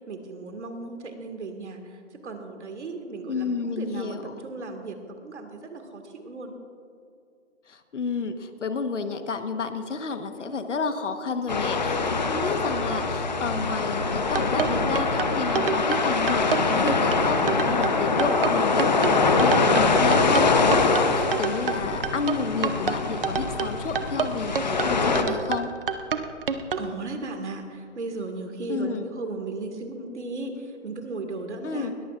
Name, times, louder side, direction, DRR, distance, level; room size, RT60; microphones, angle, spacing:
voice 1, 0.1-6.6 26.8-31.9, right 3 dB, 65° right, 5 dB, 2.0 m, -36 dB
voice 2, 3.3-4.3 7.7-25.7 28.7-29.1 31.6-31.9, left 4 dB, 70° left, 8 dB, 1.3 m, -30 dB
sound 1, 11.5-25.2, left 3 dB, 35° left, 0.8 m, -24 dB
sound 2, 14.1-26.9, right 6 dB, 45° right, 0.7 m, -28 dB
21.0 x 14.0 x 2.5 m, 2.5 s
hypercardioid pair, 175°, 37 cm